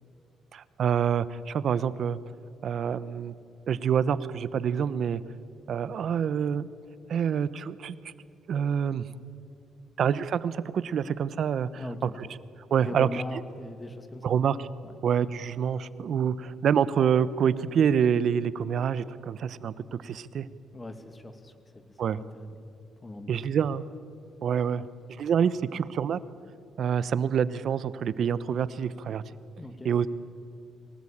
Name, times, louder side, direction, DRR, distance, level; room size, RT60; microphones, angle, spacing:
voice 1, 0.5-2.2 2.6-3.3 3.7-5.2 5.7-6.7 7.1-8.0 8.5-9.0 10.0-11.7 12.0-12.1 12.7-13.2 14.2-14.7 15.0-19.7 20.0-20.5 22.0-22.2 23.3-23.9 24.4-24.9 25.2-26.2 26.8-29.2 29.8-30.1, right 8 dB, 60° right, 16 dB, 0.9 m, -26 dB
voice 2, 11.7-12.3 12.8-14.5 14.8-15.0 20.7-22.7 23.0-23.5 29.6-30.0, left 2 dB, 20° left, 9 dB, 2.0 m, -41 dB
23.5 x 19.0 x 8.7 m, 2.5 s
cardioid pair, 90°, 0 cm